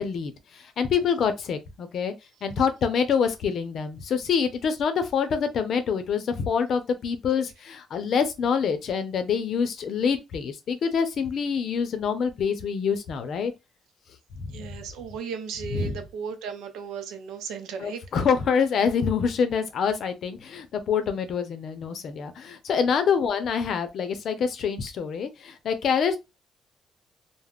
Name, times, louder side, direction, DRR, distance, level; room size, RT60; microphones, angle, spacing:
voice 1, 0.0-2.1 2.4-13.5 14.4-14.7 15.7-16.0 17.8-26.2, left 6 dB, 65° left, 0.6 m, -26 dB
voice 2, 14.5-18.0, right 6 dB, 90° right, 0.5 m, -35 dB
2.3 x 2.1 x 3.4 m
cardioid pair, 90°, 0 cm